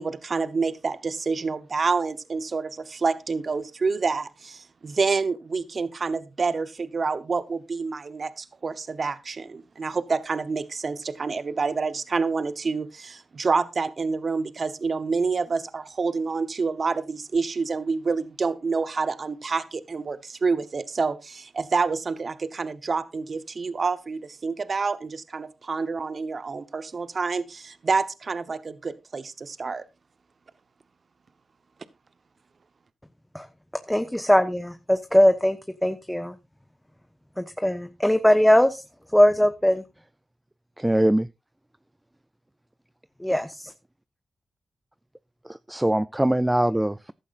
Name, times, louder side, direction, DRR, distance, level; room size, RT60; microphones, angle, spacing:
voice 1, 0.0-29.8, right 4 dB, 55° right, 13 dB, 0.9 m, -28 dB
voice 2, 33.9-36.3 37.4-38.8 39.1-39.8 43.2-43.7, equal, 5° left, 9 dB, 1.1 m, -20 dB
voice 3, 40.8-41.3 45.4-47.1, right 1 dB, 15° right, 15 dB, 0.5 m, -22 dB
14.5 x 11.5 x 2.5 m, 0.26 s
cardioid pair, 50°, 0 cm